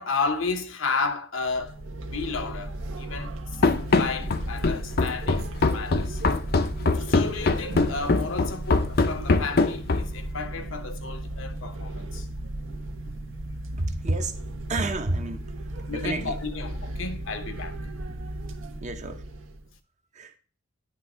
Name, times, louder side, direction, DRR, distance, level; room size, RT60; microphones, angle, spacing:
voice 1, 0.0-3.3 3.9-6.2 6.9-12.3 15.9-17.8, left 4 dB, 70° left, 0.9 m, -32 dB
sound 1, 1.4-19.7, right 1 dB, 75° right, 1.0 m, -35 dB
Run, 3.6-10.2, left 3 dB, 50° left, 0.6 m, -23 dB
voice 2, 13.8-14.4 14.7-15.4 15.9-16.4 18.8-19.2 20.1-20.3, right 2 dB, 35° right, 0.8 m, -29 dB
9.7 x 3.4 x 5.4 m
head